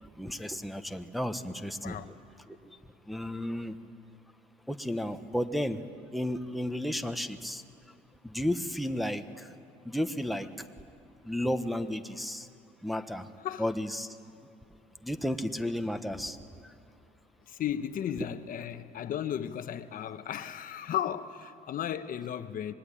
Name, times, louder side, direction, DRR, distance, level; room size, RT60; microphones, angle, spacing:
voice 1, 0.2-2.0 2.7-2.8 3.1-3.7 4.7-5.8 6.1-7.6 8.2-9.2 9.8-10.5 11.2-12.5 12.8-13.2 13.6-14.4 15.0-16.4, left 1 dB, ahead, 1.2 m, -33 dB
voice 2, 17.5-22.7, left 10 dB, 55° left, 1.1 m, -35 dB
25.5 x 21.5 x 10.0 m
cardioid pair, 110°, 17 cm